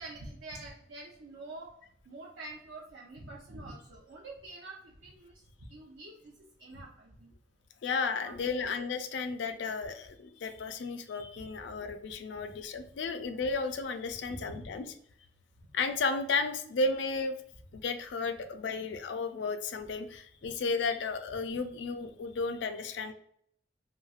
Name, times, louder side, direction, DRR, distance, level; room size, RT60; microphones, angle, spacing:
voice 1, 0.0-1.7 2.1-5.3 5.7-6.3 6.6-7.3 8.2-8.7 14.3-14.7 20.4-20.5, right 2 dB, 75° right, -4 dB, 0.5 m, -46 dB
voice 2, 7.8-14.9 15.7-17.4 17.7-23.1, left 4 dB, 75° left, 8 dB, 0.4 m, -33 dB
3.0 x 2.6 x 2.3 m, 0.65 s
head